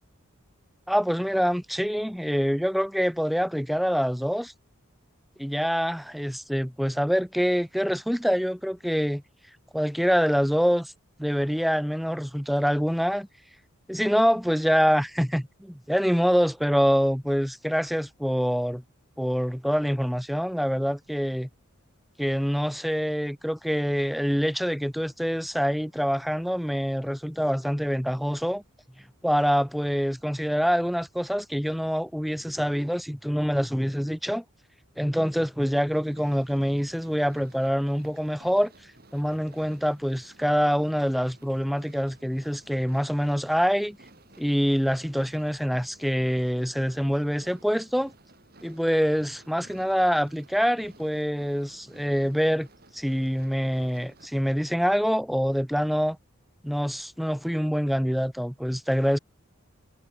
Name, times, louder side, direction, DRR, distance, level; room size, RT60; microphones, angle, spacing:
voice 1, 0.9-4.5 5.4-9.2 9.7-10.9 11.2-13.3 13.9-18.8 19.2-21.5 22.2-28.6 29.2-34.4 35.0-38.7 39.1-44.0 44.4-48.1 48.6-52.7 52.9-56.2 56.6-59.2, equal, ahead, 1.3 m, -25 dB
sound 1, 35.9-54.3, right 2 dB, 45° right, 4.2 m, -55 dB
head